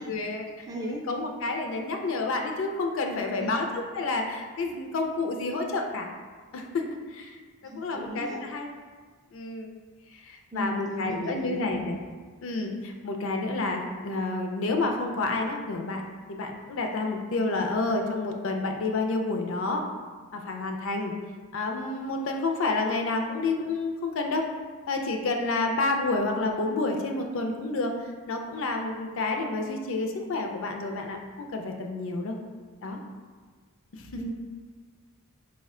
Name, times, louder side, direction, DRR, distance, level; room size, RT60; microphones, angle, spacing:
voice 1, 0.0-0.5 0.8-6.1 6.5-6.8 7.1-7.4 7.6-8.7 9.3-9.7 10.1-12.0 12.4-16.0 16.3-19.8 20.3-21.1 21.5-24.5 24.9-27.9 28.3-32.4 32.8-33.0 33.9-34.2, left 3 dB, 60° left, 3 dB, 0.4 m, -29 dB
voice 2, 0.7-1.0 3.1-3.5 7.6-8.4 10.5-11.8 34.2-34.3, right 1 dB, 15° right, -1 dB, 0.3 m, -36 dB
4.0 x 2.1 x 3.6 m, 1.5 s
head